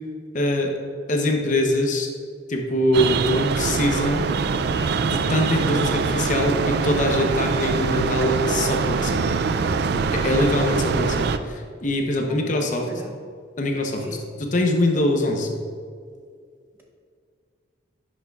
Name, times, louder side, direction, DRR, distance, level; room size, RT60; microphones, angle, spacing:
voice 1, 0.3-0.8 1.1-2.1 2.5-4.3 5.0-9.3 10.1-11.2 11.8-12.9 13.6-14.0 14.5-15.5, left 1 dB, 40° left, 2 dB, 0.7 m, -23 dB
sound 1, 2.9-11.4, right 5 dB, 55° right, 0.3 m, -23 dB
voice 2, 12.3-13.3 13.9-14.3, right 1 dB, 10° right, 0 dB, 0.6 m, -39 dB
10.5 x 6.3 x 2.4 m, 2.1 s
head